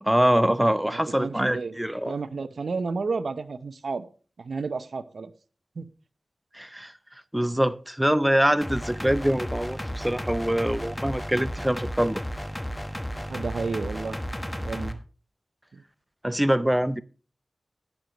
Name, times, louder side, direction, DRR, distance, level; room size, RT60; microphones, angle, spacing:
voice 1, 0.0-2.1 6.5-6.9 7.3-12.2 16.2-17.0, equal, 10° right, 0.5 m, -24 dB
voice 2, 0.8-1.7 2.1-4.0 4.4-5.3 5.8-5.9 13.2-14.2 14.6-15.0 15.7-15.8, right 4 dB, 80° right, 0.7 m, -32 dB
sound 1, 8.6-14.9, equal, 10° left, 1.2 m, -33 dB
11.5 x 9.3 x 3.0 m
cardioid pair, 55°, 0 cm